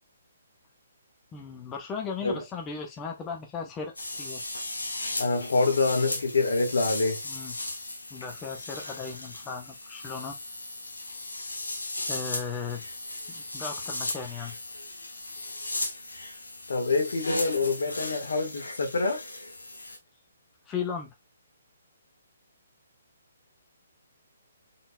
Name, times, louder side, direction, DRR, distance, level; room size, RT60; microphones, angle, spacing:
voice 1, 1.3-4.4 7.2-7.5 8.1-10.4 12.1-12.8 13.3-14.5 20.7-21.1, left 6 dB, 20° left, 0.9 m, -36 dB
sound 1, 4.0-20.0, left 2 dB, 90° left, 1.3 m, -36 dB
voice 2, 5.2-7.2 16.7-19.2, left 3 dB, 70° left, 1.6 m, -26 dB
4.2 x 3.8 x 2.4 m
figure-of-eight pair, 140°, 0 cm